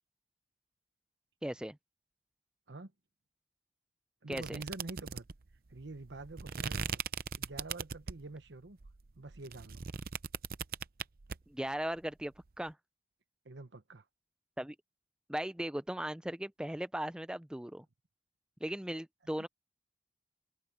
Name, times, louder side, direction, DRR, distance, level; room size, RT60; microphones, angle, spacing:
voice 1, 1.4-1.8 4.3-4.6 11.5-12.8 14.6-14.8 15.3-17.9 18.6-19.5, right 1 dB, 5° right, 0.4 m, -38 dB
voice 2, 4.2-5.3 5.7-7.0 7.4-8.8 9.2-9.9 13.4-14.0, right 2 dB, 85° right, 1.1 m, -47 dB
sound 1, 4.3-8.3 8.8-11.4, right 6 dB, 55° right, 0.6 m, -39 dB
head